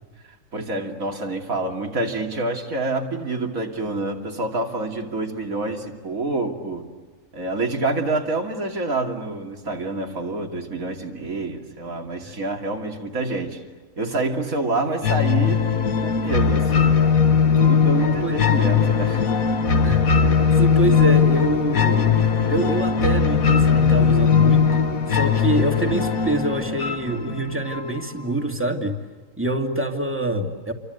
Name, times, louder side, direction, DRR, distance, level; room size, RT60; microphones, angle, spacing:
voice 1, 0.5-6.9 7.3-13.6 14.0-15.7 16.0-16.9 17.6-19.3, right 2 dB, 85° right, 2 dB, 3.2 m, -27 dB
sound 1, 15.0-28.0, left 6 dB, 85° left, 1.9 m, -19 dB
voice 2, 18.0-18.4 19.8-20.1 20.6-22.1 22.5-29.0 29.4-30.7, right 1 dB, 10° right, 4 dB, 2.4 m, -25 dB
29.0 x 24.5 x 8.1 m, 1.5 s
omnidirectional pair, 1.4 m